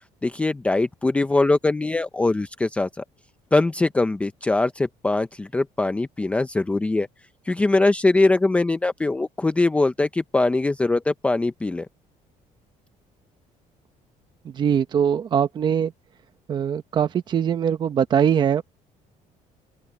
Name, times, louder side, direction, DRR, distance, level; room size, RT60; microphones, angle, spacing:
voice 1, 0.2-2.9 3.5-7.1 7.5-11.9, left 2 dB, 10° left, 0.6 m, -22 dB
voice 2, 14.4-15.9 16.5-18.6, right 8 dB, 30° right, 1.2 m, -22 dB
open air
cardioid pair, 180°, 14 cm